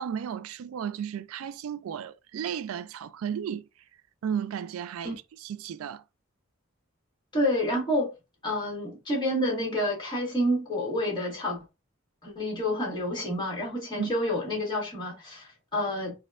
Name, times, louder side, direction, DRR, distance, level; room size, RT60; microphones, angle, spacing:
voice 1, 0.0-3.7 4.2-6.0 14.0-14.1, right 8 dB, 90° right, 0.3 m, -34 dB
voice 2, 7.3-8.1 8.4-11.6 12.2-16.1, left 1 dB, 20° left, 1.5 m, -29 dB
4.2 x 2.2 x 2.3 m
head